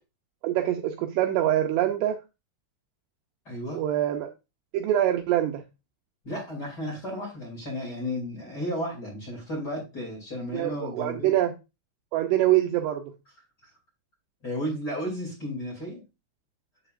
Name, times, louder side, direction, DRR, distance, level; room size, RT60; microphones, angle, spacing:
voice 1, 0.4-2.2 3.7-4.3 4.7-5.6 10.5-11.5 12.1-13.1, right 12 dB, 80° right, 2.5 m, -24 dB
voice 2, 3.4-3.8 6.2-11.4 13.6-13.7 14.4-16.0, equal, 25° left, 2.5 m, -33 dB
8.1 x 7.0 x 2.5 m
omnidirectional pair, 5.4 m